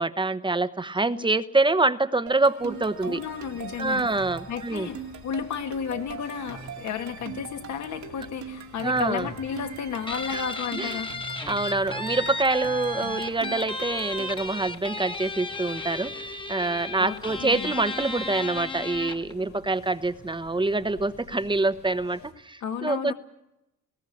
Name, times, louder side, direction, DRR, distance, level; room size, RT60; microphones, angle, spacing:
voice 1, 0.0-3.2 3.8-4.9 8.8-9.3 10.3-10.4 10.8-11.0 11.5-23.1, right 3 dB, 15° right, 12 dB, 1.0 m, -26 dB
sound 1, 2.3-14.6, right 7 dB, 70° right, 2.4 m, -42 dB
sound 2, 2.6-22.3, left 4 dB, 85° left, 4.1 m, -50 dB
voice 2, 3.0-4.1 4.5-11.1 17.0-17.7 22.6-23.1, left 7 dB, 65° left, 6 dB, 2.0 m, -33 dB
Guitar, 10.1-19.3, left 3 dB, 15° left, 1.4 m, -34 dB
20.0 x 18.0 x 8.5 m, 0.91 s
cardioid pair, 90°, 30 cm